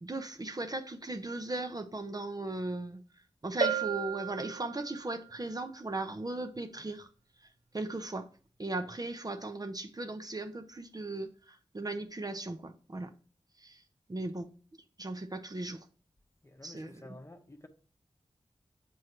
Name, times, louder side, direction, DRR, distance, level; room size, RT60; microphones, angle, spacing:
voice 1, 0.0-3.0 3.4-7.1 7.7-8.3 8.6-13.1 13.6-13.8 14.1-14.5 15.0-15.9 16.6-17.2, right 2 dB, 35° right, 0.6 m, -37 dB
Bell, 3.6-5.2, right 6 dB, 75° right, 0.5 m, -33 dB
voice 2, 16.4-17.7, left 1 dB, 25° left, 0.9 m, -51 dB
7.7 x 4.6 x 3.0 m
cardioid pair, 40°, 11 cm